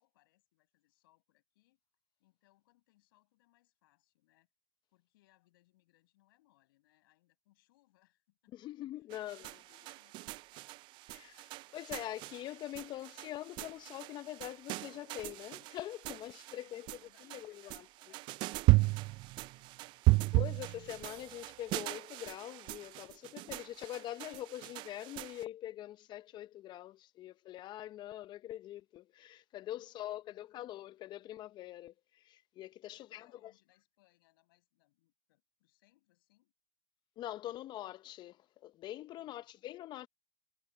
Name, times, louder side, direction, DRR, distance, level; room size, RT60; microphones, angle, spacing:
voice 1, 0.0-1.8 2.2-4.5 4.9-10.7 16.5-20.2 29.7-30.5 32.8-36.5 39.1-39.5, left 18 dB, 65° left, 7.4 m, -72 dB
voice 2, 8.5-9.5 11.1-17.8 20.3-33.5 37.2-40.1, left 13 dB, 35° left, 0.9 m, -44 dB
sound 1, 9.1-25.4, right 22 dB, 40° right, 0.4 m, -35 dB
hypercardioid pair, 105°, 13 cm